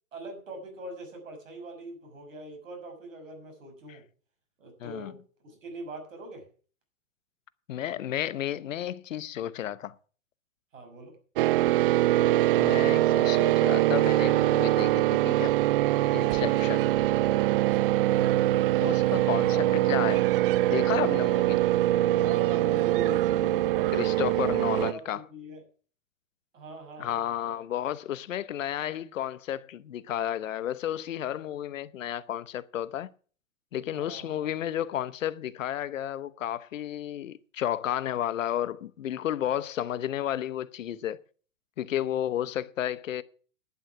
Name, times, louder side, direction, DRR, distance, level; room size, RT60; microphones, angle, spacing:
voice 1, 0.1-4.0 4.6-5.2 5.4-6.4 10.7-11.1 16.4-16.8 18.1-18.5 19.5-19.6 22.1-25.6 26.5-27.6 33.9-34.5, right 2 dB, 75° right, 6.3 m, -42 dB
voice 2, 4.8-5.1 7.7-9.9 12.6-15.6 16.1-16.8 18.8-20.3 20.7-21.7 23.9-25.2 27.0-33.1 33.7-41.2 41.8-43.2, left 11 dB, 75° left, 0.9 m, -32 dB
sound 1, 11.4-24.9, right 15 dB, 45° right, 0.4 m, -23 dB
11.0 x 9.2 x 6.0 m
hypercardioid pair, 120°, 39 cm